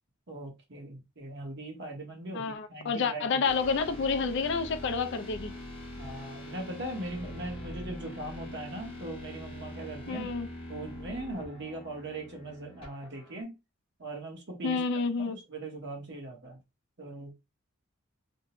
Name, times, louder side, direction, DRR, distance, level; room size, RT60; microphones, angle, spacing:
voice 1, 0.3-3.4 6.0-10.3 10.7-13.5 14.0-14.8 15.2-16.6 17.0-17.3, right 2 dB, 55° right, 0.9 m, -40 dB
voice 2, 2.3-5.5 10.1-10.5 14.6-15.4, left 5 dB, 55° left, 0.3 m, -29 dB
sound 1, 3.4-13.4, left 1 dB, 25° left, 0.7 m, -43 dB
2.5 x 2.0 x 2.9 m
head